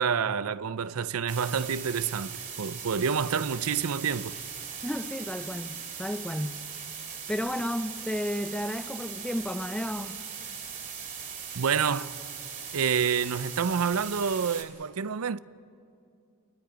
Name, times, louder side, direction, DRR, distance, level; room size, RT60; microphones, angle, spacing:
voice 1, 0.0-4.4 11.5-12.1 12.7-15.4, right 6 dB, 85° right, 0.5 m, -28 dB
sound 1, 1.3-14.6, right 7 dB, 40° right, 2.9 m, -39 dB
voice 2, 4.8-6.6 7.3-10.2, equal, 5° left, 0.6 m, -32 dB
30.0 x 22.0 x 5.1 m
head